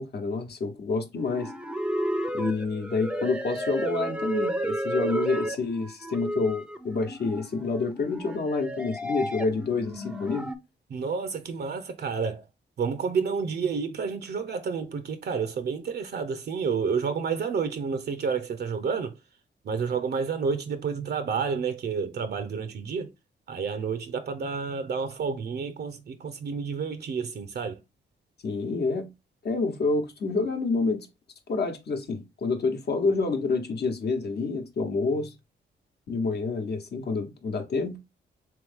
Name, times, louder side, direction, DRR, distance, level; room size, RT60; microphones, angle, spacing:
voice 1, 0.0-1.5 2.3-10.5 28.4-29.1 29.4-31.1 31.5-35.3 36.1-38.0, left 4 dB, 60° left, 0.9 m, -28 dB
sound 1, 1.2-10.6, right 1 dB, 5° right, 0.5 m, -32 dB
voice 2, 10.9-12.4 12.8-19.1 19.6-23.1 23.5-27.8, right 5 dB, 60° right, 0.6 m, -30 dB
3.5 x 3.1 x 3.4 m
cardioid pair, 90°, 19 cm